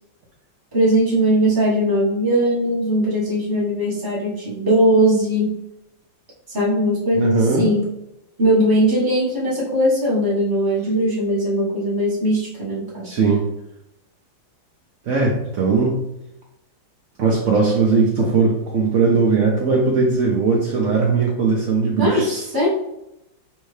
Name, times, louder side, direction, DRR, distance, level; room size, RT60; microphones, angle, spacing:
voice 1, 0.7-5.6 6.5-7.9 8.4-13.1 18.2-18.3 22.0-22.7, equal, 15° right, -5 dB, 0.8 m, -19 dB
voice 2, 7.1-7.7 13.0-13.4 15.1-16.0 17.2-22.4, right 4 dB, 80° right, -2 dB, 0.6 m, -19 dB
4.5 x 2.7 x 3.2 m, 0.84 s
omnidirectional pair, 2.1 m